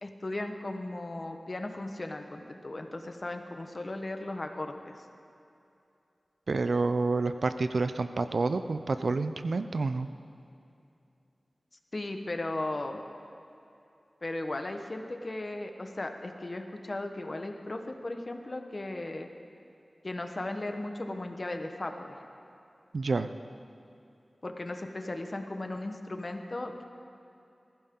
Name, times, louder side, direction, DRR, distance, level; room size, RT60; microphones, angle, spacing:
voice 1, 0.0-5.0 11.9-13.0 14.2-19.3 20.0-22.2 24.4-26.8, left 2 dB, 45° left, 5 dB, 1.2 m, -36 dB
voice 2, 6.5-10.1 22.9-23.3, right 3 dB, 80° right, 10 dB, 0.6 m, -28 dB
20.5 x 15.0 x 3.9 m, 2.7 s
wide cardioid pair, 70°, 0 cm